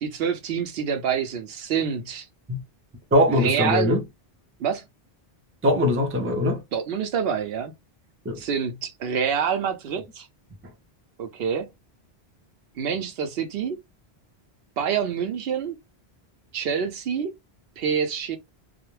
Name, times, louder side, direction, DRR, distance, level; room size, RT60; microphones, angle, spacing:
voice 1, 0.0-2.3 3.3-4.0 4.6-4.8 6.7-7.7 8.4-10.3 11.2-11.7 12.8-13.8 14.8-15.8 16.5-17.3 17.8-18.4, right 7 dB, 70° right, 0.8 m, -27 dB
voice 2, 3.1-4.0 5.6-6.6 8.2-8.4, left 1 dB, 20° right, 0.4 m, -21 dB
2.4 x 2.0 x 3.0 m
omnidirectional pair, 1.1 m